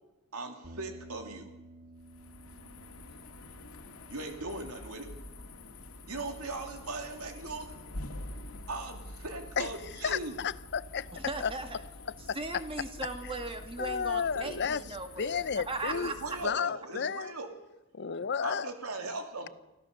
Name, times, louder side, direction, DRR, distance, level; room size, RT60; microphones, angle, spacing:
voice 1, 0.3-1.5 4.1-5.1 6.1-7.8 8.7-10.4 15.9-17.5 18.4-19.5, right 2 dB, 85° right, 4 dB, 2.7 m, -39 dB
sound 1, 0.6-9.0, right 1 dB, 45° right, 1.8 m, -55 dB
sound 2, 2.0-16.5, left 2 dB, 70° left, 2.1 m, -47 dB
voice 2, 10.0-11.1 11.4-11.5 12.3-12.4 13.8-14.8 15.2-16.1 16.4-17.3 17.9-18.7, left 6 dB, 50° left, 17 dB, 0.6 m, -32 dB
voice 3, 11.1-11.8 12.3-16.1, right 2 dB, 25° right, 6 dB, 2.1 m, -38 dB
25.5 x 15.5 x 6.6 m, 0.98 s
head